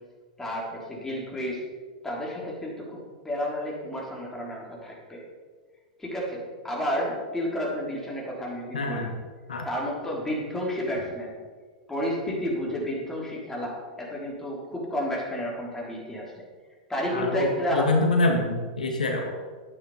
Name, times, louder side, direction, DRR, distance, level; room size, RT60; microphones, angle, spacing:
voice 1, 0.4-1.6 2.0-3.0 3.2-5.2 6.0-9.1 9.6-11.4 11.9-16.4 16.9-17.9, equal, 10° left, -3 dB, 3.9 m, -31 dB
voice 2, 8.7-9.1 9.5-9.7 17.1-19.3, left 2 dB, 85° left, 2 dB, 1.9 m, -25 dB
11.5 x 8.9 x 5.1 m, 1.5 s
hypercardioid pair, 105°, 4 cm